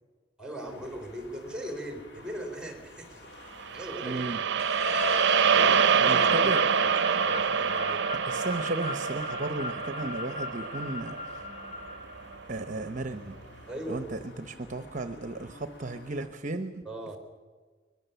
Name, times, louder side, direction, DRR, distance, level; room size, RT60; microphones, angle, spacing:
voice 1, 0.4-3.3 3.7-4.4 5.5-8.1 13.7-14.1 16.9-17.2, right 1 dB, 5° right, 5 dB, 3.7 m, -40 dB
sound 1, 0.6-16.3, left 1 dB, 60° left, 2.3 m, -52 dB
sound 2, 3.6-11.9, right 7 dB, 60° right, 0.6 m, -26 dB
voice 2, 4.0-4.4 6.0-6.6 8.2-11.4 12.5-16.8, right 2 dB, 40° right, 9 dB, 0.9 m, -35 dB
sound 3, 4.6-12.4, left 4 dB, 40° left, 1.2 m, -37 dB
22.0 x 21.5 x 7.0 m, 1.5 s
head